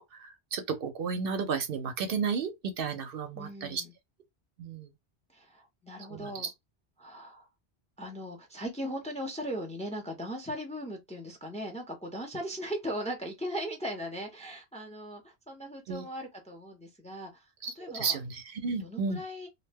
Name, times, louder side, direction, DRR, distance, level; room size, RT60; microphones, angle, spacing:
voice 1, 0.0-3.8 4.6-4.9 6.1-6.5 15.9-16.1 17.6-19.2, right 5 dB, 65° right, 0.7 m, -33 dB
voice 2, 3.4-3.9 5.3-6.5 7.0-7.5 8.0-17.5 17.8-18.2 18.6-19.5, equal, 10° left, 0.5 m, -38 dB
2.6 x 2.1 x 3.3 m
omnidirectional pair, 1.1 m